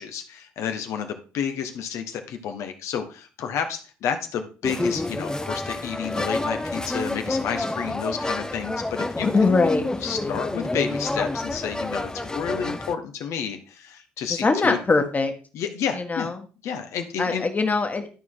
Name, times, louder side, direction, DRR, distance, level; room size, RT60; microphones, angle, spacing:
voice 1, 0.0-9.5 10.0-14.8 15.5-16.3 16.6-17.4, left 7 dB, 65° left, 6 dB, 1.2 m, -30 dB
sound 1, 4.6-12.9, left 2 dB, 15° left, 0.7 m, -29 dB
voice 2, 9.2-9.8 10.2-10.4 14.4-15.3 15.9-16.3 17.2-18.1, left 3 dB, 30° left, 6 dB, 1.7 m, -22 dB
12.5 x 4.7 x 3.8 m, 0.35 s
hypercardioid pair, 55°, 5 cm